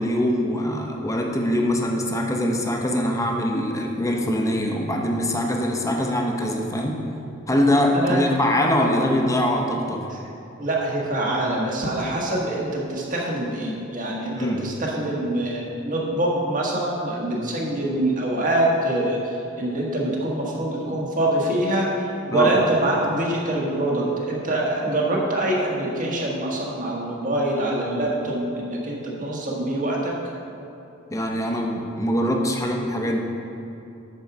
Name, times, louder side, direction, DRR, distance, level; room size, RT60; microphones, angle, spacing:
voice 1, 0.0-7.0 7.5-10.1 14.4-14.7 22.3-22.5 31.1-33.2, left 1 dB, 15° left, 1 dB, 0.8 m, -23 dB
voice 2, 10.6-19.2 19.6-21.9 22.3-30.1, right 1 dB, 40° right, -3 dB, 1.5 m, -24 dB
9.4 x 4.7 x 6.0 m, 2.9 s
head